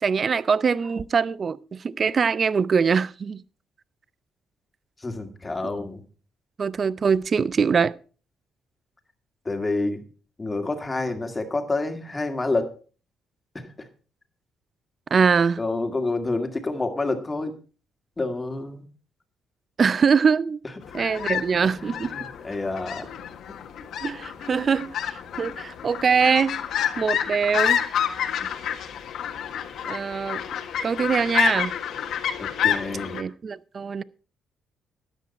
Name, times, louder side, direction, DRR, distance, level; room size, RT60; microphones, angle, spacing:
voice 1, 0.0-3.4 6.6-7.9 15.1-15.6 19.8-20.6 20.9-22.1 24.0-26.6 27.0-27.8 29.8-30.4 30.8-31.7 33.1-34.0, right 6 dB, 45° right, 0.5 m, -23 dB
voice 2, 5.0-6.0 9.5-10.0 10.4-12.7 15.6-17.5 18.2-18.8 21.8-23.1 23.5-23.6 32.4-33.2, left 2 dB, 20° left, 2.1 m, -28 dB
sound 1, 20.8-33.2, left 9 dB, 75° left, 1.5 m, -29 dB
13.0 x 9.9 x 4.2 m
cardioid pair, 90°, 0 cm